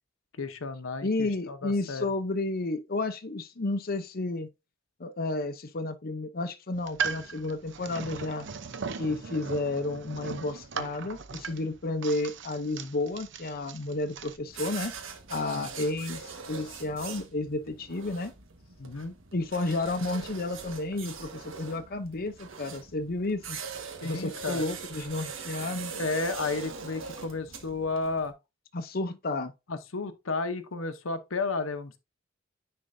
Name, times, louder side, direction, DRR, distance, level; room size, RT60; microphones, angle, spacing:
voice 1, 0.4-2.1 15.5-15.7 18.8-19.2 24.0-24.7 25.9-28.3 29.7-32.0, left 3 dB, 90° left, 0.9 m, -32 dB
voice 2, 1.0-4.5 5.0-8.5 9.0-14.9 15.3-18.3 19.3-23.6 24.0-25.9 28.7-29.5, left 2 dB, 50° left, 0.7 m, -31 dB
sound 1, 6.7-14.4, right 5 dB, 65° right, 0.8 m, -38 dB
sound 2, 14.5-28.3, right 5 dB, 80° right, 1.5 m, -42 dB
10.0 x 4.4 x 2.7 m
head